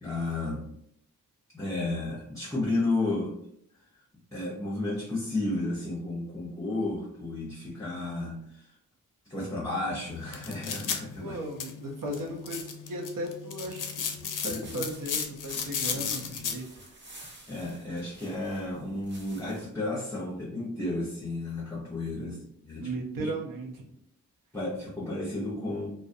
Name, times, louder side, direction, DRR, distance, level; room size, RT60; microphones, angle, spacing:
voice 1, 0.0-0.7 1.5-3.3 4.3-8.7 9.2-11.4 14.4-14.9 15.9-16.4 17.5-22.4 22.6-22.9 23.2-23.3 24.5-25.9, left 2 dB, 10° left, -5 dB, 0.7 m, -32 dB
sound 1, 10.1-16.6, left 7 dB, 65° left, 0.5 m, -35 dB
voice 2, 11.2-17.0 22.1-22.4 22.7-24.0, right 1 dB, 70° right, 2 dB, 0.7 m, -37 dB
sound 2, 14.6-19.7, right 1 dB, 35° right, 0.7 m, -51 dB
2.3 x 2.1 x 2.6 m, 0.69 s
cardioid pair, 55°, 34 cm